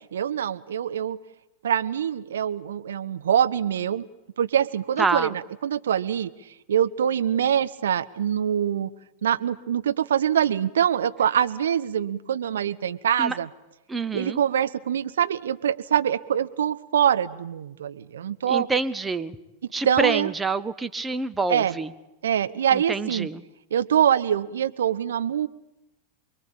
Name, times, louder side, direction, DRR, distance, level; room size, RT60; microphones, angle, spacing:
voice 1, 0.1-1.2 1.6-4.0 4.4-6.3 6.7-8.9 9.2-13.5 14.1-18.7 19.8-20.3 21.5-21.7 22.2-23.3 23.7-25.5, right 9 dB, 65° right, 11 dB, 1.1 m, -24 dB
voice 2, 5.0-5.4 13.2-13.4 13.9-14.4 18.5-19.4 19.7-21.9 22.7-23.4, right 4 dB, 10° right, 12 dB, 1.2 m, -27 dB
28.0 x 21.5 x 8.9 m, 0.95 s
figure-of-eight pair, 90°, 0 cm